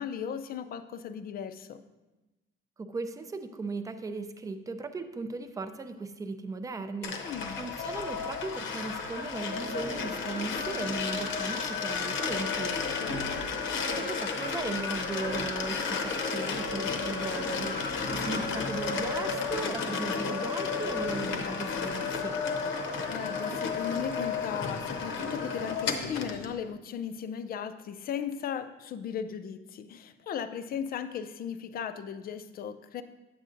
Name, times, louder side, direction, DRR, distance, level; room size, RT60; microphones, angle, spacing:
voice 1, 0.0-1.8 7.2-7.6 13.0-13.2 23.1-33.0, left 8 dB, 45° left, 11 dB, 0.4 m, -37 dB
voice 2, 2.8-12.8 13.8-22.4, right 3 dB, 15° right, 8 dB, 0.4 m, -37 dB
sound 1, 7.0-26.5, left 5 dB, 65° left, 0.8 m, -32 dB
9.2 x 7.5 x 2.5 m, 1.1 s
cardioid pair, 150°, 21 cm